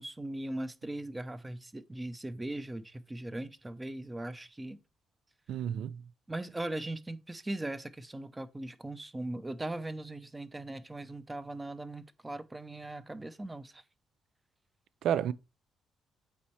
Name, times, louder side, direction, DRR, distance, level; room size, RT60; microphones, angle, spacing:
voice 1, 0.0-4.8 6.3-13.8, right 1 dB, 15° right, 0.7 m, -39 dB
voice 2, 5.5-6.0 15.0-15.3, right 9 dB, 75° right, 0.4 m, -30 dB
8.4 x 4.3 x 3.1 m
cardioid pair, 90°, 0 cm